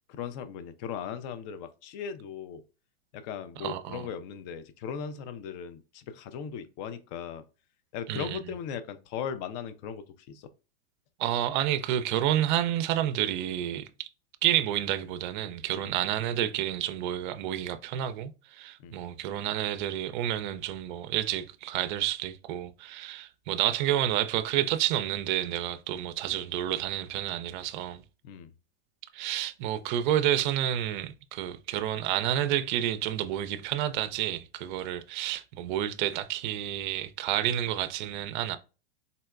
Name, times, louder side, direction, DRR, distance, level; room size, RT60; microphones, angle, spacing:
voice 1, 0.1-2.6 3.1-7.4 7.9-10.5 15.7-15.9 18.8-19.0 28.2-28.5, left 7 dB, 45° left, 0.5 m, -38 dB
voice 2, 3.6-4.1 8.1-8.4 11.2-14.1 14.4-28.0 29.1-38.6, right 12 dB, 50° right, 0.4 m, -29 dB
3.9 x 2.1 x 2.3 m
hypercardioid pair, 115°, 32 cm